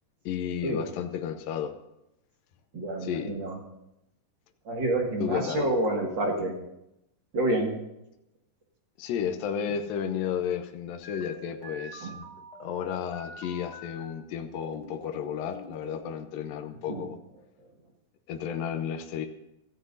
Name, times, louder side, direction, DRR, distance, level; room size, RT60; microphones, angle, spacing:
voice 1, 0.3-1.8 3.0-3.3 5.2-5.7 9.0-12.1 12.6-17.2 18.3-19.3, left 8 dB, 85° left, 6 dB, 2.6 m, -32 dB
voice 2, 2.7-3.6 4.6-6.6 7.3-7.7 12.0-12.1 16.9-17.1, right 1 dB, 40° right, 0 dB, 2.3 m, -28 dB
sound 1, 11.0-14.0 14.5-16.1, equal, 35° left, 1.9 m, -45 dB
24.5 x 14.0 x 2.7 m, 0.86 s
omnidirectional pair, 4.0 m